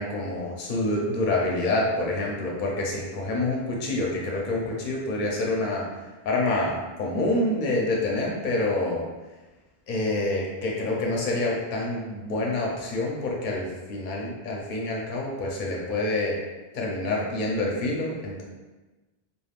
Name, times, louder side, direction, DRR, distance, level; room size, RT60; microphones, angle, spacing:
voice 1, 0.0-9.0 9.9-16.4 16.7-18.4, left 2 dB, 55° left, -2 dB, 0.7 m, -27 dB
3.3 x 2.3 x 2.4 m, 1.1 s
omnidirectional pair, 1.1 m